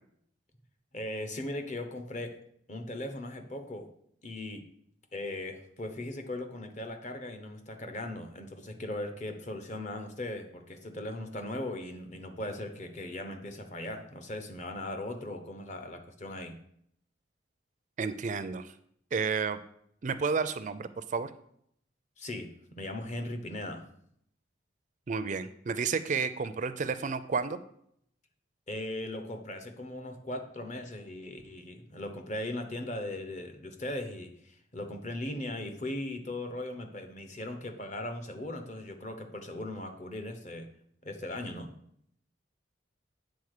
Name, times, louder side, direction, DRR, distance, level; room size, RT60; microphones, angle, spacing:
voice 1, 0.9-2.4 2.7-3.9 4.2-4.6 5.1-16.6 22.2-23.9 28.7-40.7 41.0-41.7, left 1 dB, 40° left, 5 dB, 1.0 m, -38 dB
voice 2, 18.0-18.7 19.1-19.6 20.0-21.3 25.1-27.6, right 5 dB, 40° right, 12 dB, 0.4 m, -31 dB
8.4 x 3.9 x 6.6 m, 0.69 s
head